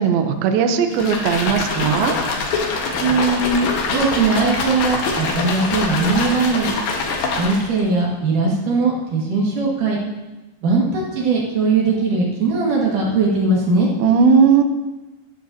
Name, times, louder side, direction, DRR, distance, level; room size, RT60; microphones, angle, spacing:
voice 1, 0.0-2.1 14.0-14.6, right 6 dB, 75° right, 6 dB, 2.5 m, -17 dB
sound 1, 0.9-7.8, left 3 dB, 65° left, 2.9 m, -24 dB
voice 2, 3.0-6.7 7.4-10.0 10.6-13.9, right 3 dB, 60° right, -3 dB, 3.2 m, -19 dB
17.5 x 10.5 x 2.8 m, 1.1 s
omnidirectional pair, 4.6 m